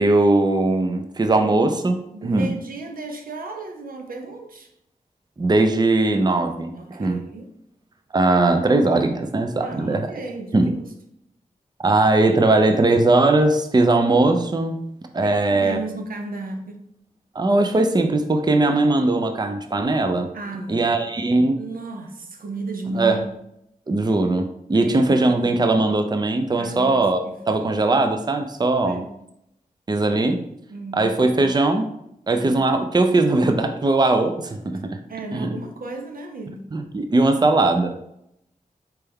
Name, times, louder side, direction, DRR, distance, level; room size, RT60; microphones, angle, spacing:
voice 1, 0.0-2.5 5.4-7.2 8.1-10.1 10.5-10.7 11.8-14.8 15.1-15.8 17.3-20.3 20.7-21.6 22.9-23.2 23.9-29.0 29.9-30.4 30.9-31.9 32.3-35.0 35.3-35.6 36.7-38.0, right 2 dB, 30° right, 6 dB, 0.5 m, -19 dB
voice 2, 2.1-4.7 6.7-7.5 9.6-10.9 15.2-16.9 20.3-20.9 21.6-23.3 24.7-25.3 26.6-27.6 28.8-29.1 30.7-31.1 32.3-32.6 35.1-36.6, right 2 dB, 75° right, 4 dB, 0.7 m, -34 dB
4.5 x 3.3 x 3.5 m, 0.78 s
cardioid pair, 50°, 15 cm